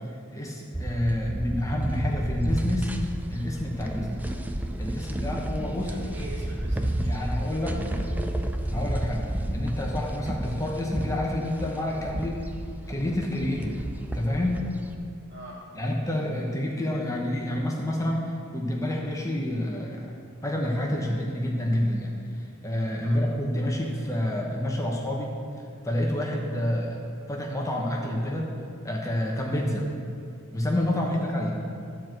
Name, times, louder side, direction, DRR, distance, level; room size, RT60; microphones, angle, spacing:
voice 1, 0.3-3.0 3.3-4.3 4.8-6.0 7.0-7.9 8.7-12.4 12.9-13.8 14.1-14.7 15.7-20.1 20.4-25.3 25.8-27.0 27.3-28.5 28.8-29.9 30.5-31.7, left 1 dB, 15° left, -1 dB, 0.9 m, -28 dB
sound 1, 0.7-14.9, right 1 dB, 5° right, 0.5 m, -31 dB
voice 2, 5.8-7.2 15.3-15.6 23.0-23.2 31.0-31.2, right 2 dB, 55° right, -5 dB, 2.6 m, -44 dB
11.5 x 4.5 x 7.7 m, 2.4 s
head